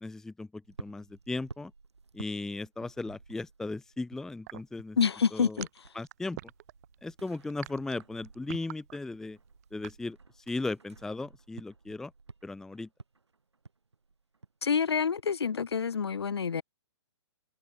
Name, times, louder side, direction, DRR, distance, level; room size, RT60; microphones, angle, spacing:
voice 1, 0.0-1.7 2.1-5.0 5.3-5.6 5.9-6.4 7.0-9.4 9.7-10.2 10.5-12.1 12.4-12.9, left 2 dB, 5° left, 0.7 m, -37 dB
sound 1, 0.6-5.0 5.3-16.1, right 4 dB, 70° right, 7.0 m, -53 dB
sound 2, 4.4-10.0, right 17 dB, 35° right, 1.1 m, -45 dB
voice 2, 5.0-5.7 14.6-16.6, left 6 dB, 60° left, 1.7 m, -27 dB
figure-of-eight pair, 120°, 15 cm